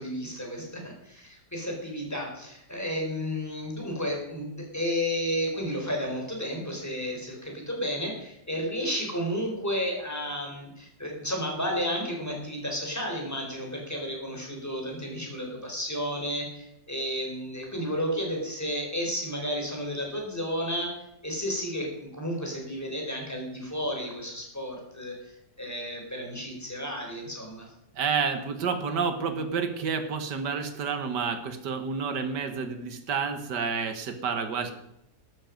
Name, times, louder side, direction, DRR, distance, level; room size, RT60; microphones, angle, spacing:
voice 1, 0.0-20.9 21.2-27.7, equal, 10° left, 0 dB, 4.4 m, -32 dB
voice 2, 28.0-34.7, right 5 dB, 85° right, 8 dB, 2.0 m, -29 dB
13.5 x 12.5 x 5.3 m, 0.81 s
omnidirectional pair, 1.8 m